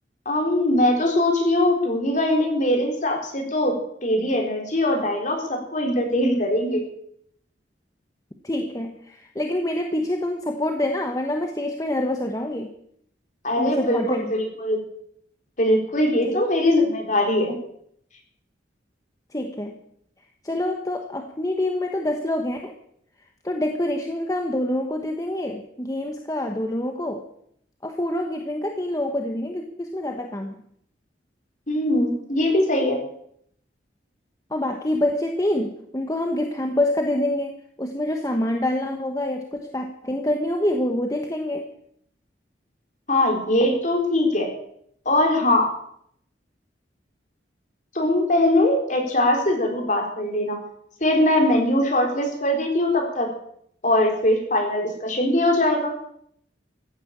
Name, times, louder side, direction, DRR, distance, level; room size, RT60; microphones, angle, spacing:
voice 1, 0.3-3.8 4.0-6.8 13.4-14.8 15.6-17.5 31.7-33.0 43.1-44.5 45.1-45.7 47.9-50.6 51.0-53.3 53.8-55.9, left 1 dB, 40° left, 2 dB, 4.1 m, -21 dB
voice 2, 8.4-12.7 13.6-14.3 16.2-16.4 19.3-19.8 20.4-22.7 23.4-27.3 27.8-30.6 34.5-41.7, left 1 dB, 20° left, 4 dB, 1.2 m, -26 dB
15.0 x 9.9 x 8.7 m, 0.69 s
head